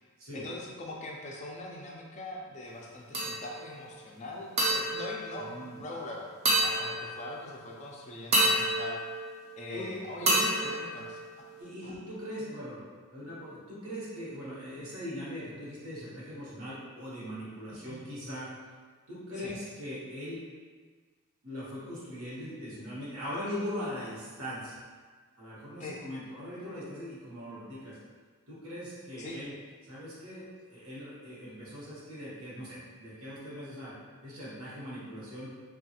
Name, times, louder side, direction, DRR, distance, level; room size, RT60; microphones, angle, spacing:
voice 1, 0.3-9.2 9.6-11.2 11.8-12.0 17.7-18.0 19.4-19.6 25.8-26.0 29.2-29.4, left 2 dB, 30° left, -2 dB, 0.3 m, -42 dB
sound 1, 3.1-3.7 4.6-6.0 6.4-7.5 8.3-9.8 10.3-11.7, right 1 dB, 30° right, 0.4 m, -29 dB
voice 2, 5.4-5.8 9.7-9.9 10.2-10.5 11.6-12.8 13.1-18.5 19.1-20.4 21.4-24.8 25.4-28.0 28.5-29.5 29.8-33.9 34.2-35.5, equal, 75° right, -8 dB, 1.0 m, -40 dB
3.0 x 2.3 x 2.8 m, 1.5 s
head